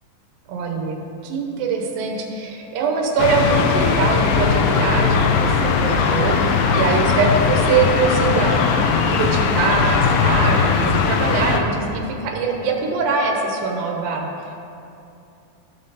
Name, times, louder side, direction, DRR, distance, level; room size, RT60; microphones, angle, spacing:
voice 1, 0.5-1.0 1.2-8.6 9.1-14.3, right 4 dB, 85° right, 1 dB, 2.7 m, -23 dB
sound 1, 3.2-11.6, left 5 dB, 85° left, 2.3 m, -19 dB
14.0 x 5.5 x 4.1 m, 2.7 s
omnidirectional pair, 4.0 m